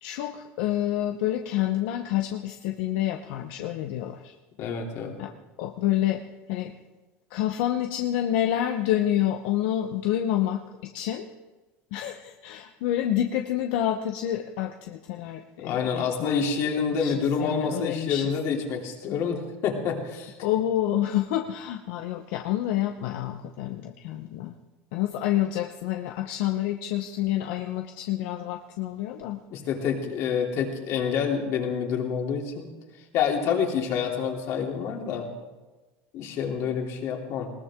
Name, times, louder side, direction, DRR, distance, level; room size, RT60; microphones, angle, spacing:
voice 1, 0.0-4.3 5.2-5.3 5.6-6.2 6.5-6.7 7.3-11.3 11.9-16.4 17.0-18.3 20.4-24.5 24.9-29.4, left 12 dB, 80° left, 4 dB, 0.9 m, -28 dB
voice 2, 4.6-5.1 15.6-20.3 29.5-32.7 33.1-35.3 36.1-37.5, left 6 dB, 55° left, 1 dB, 3.1 m, -27 dB
20.5 x 18.5 x 3.7 m, 1.2 s
cardioid pair, 150°, 6 cm